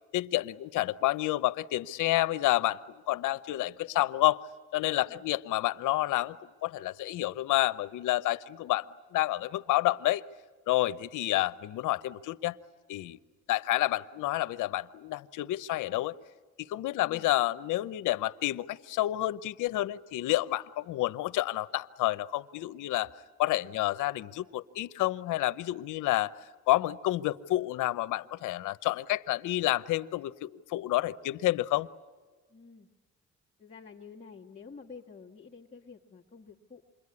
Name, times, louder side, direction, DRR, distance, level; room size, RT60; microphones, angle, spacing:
voice 1, 0.1-2.8 3.1-4.4 4.7-6.4 6.6-10.2 10.7-12.6 12.9-13.2 13.5-16.1 16.6-23.1 23.4-26.3 26.7-31.9, left 16 dB, 85° left, 14 dB, 0.8 m, -29 dB
voice 2, 16.9-17.3 32.5-32.9 33.6-36.8, left 5 dB, 25° left, -4 dB, 1.6 m, -49 dB
27.5 x 22.0 x 9.7 m, 1.4 s
cardioid pair, 90°, 30 cm